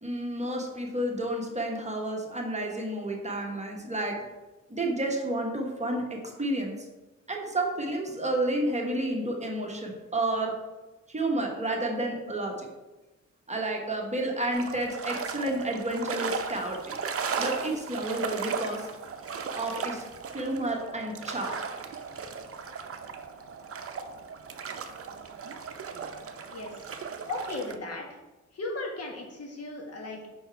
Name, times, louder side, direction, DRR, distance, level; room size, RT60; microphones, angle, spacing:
voice 1, 0.0-4.2 4.7-6.7 7.3-10.5 11.1-12.7 13.5-16.9 17.4-18.8 19.5-20.0 20.3-21.6, right 1 dB, 25° right, 0 dB, 1.2 m, -30 dB
sound 1, 14.5-27.8, right 5 dB, 50° right, 0.7 m, -36 dB
voice 2, 27.2-28.2 28.5-30.3, left 2 dB, 55° left, 0 dB, 1.5 m, -36 dB
5.8 x 4.4 x 4.5 m, 1.1 s
cardioid pair, 100°, 30 cm